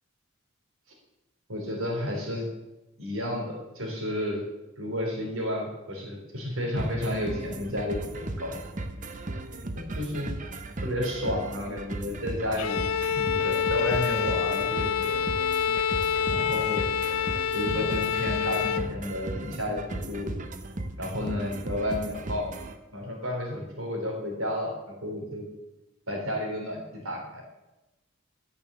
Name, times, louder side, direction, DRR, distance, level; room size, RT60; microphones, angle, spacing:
voice 1, 1.5-2.5 3.0-4.4 4.8-8.5 9.7-10.3 10.8-12.8 13.1-15.2 16.3-16.8 17.5-20.4 21.0-22.5 22.9-25.5 26.1-27.4, left 1 dB, 75° right, 0 dB, 3.9 m, -31 dB
sound 1, 6.8-22.7, right 2 dB, 35° right, 0.8 m, -36 dB
Bowed string instrument, 12.6-18.9, left 8 dB, 80° left, 0.5 m, -27 dB
12.5 x 6.9 x 6.9 m, 1.0 s
head